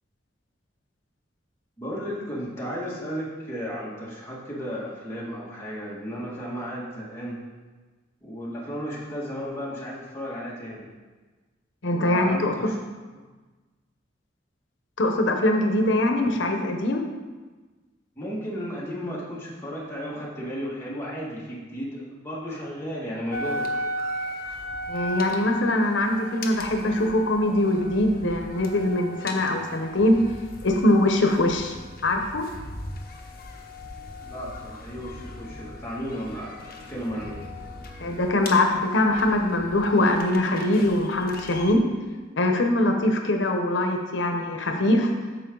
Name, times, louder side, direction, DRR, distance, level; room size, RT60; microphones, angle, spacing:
voice 1, 1.8-7.4 8.2-10.9 12.1-12.7 13.1-13.3 18.2-23.7 34.2-37.4, equal, 15° left, -6 dB, 2.0 m, -34 dB
voice 2, 11.8-12.7 15.0-17.0 24.9-30.2 30.6-31.7 32.0-32.5 38.0-41.8 42.4-45.1, left 1 dB, 80° left, 4 dB, 0.9 m, -22 dB
sound 1, 23.3-41.7, equal, 50° left, 1.0 m, -37 dB
13.0 x 4.6 x 3.9 m, 1.3 s
head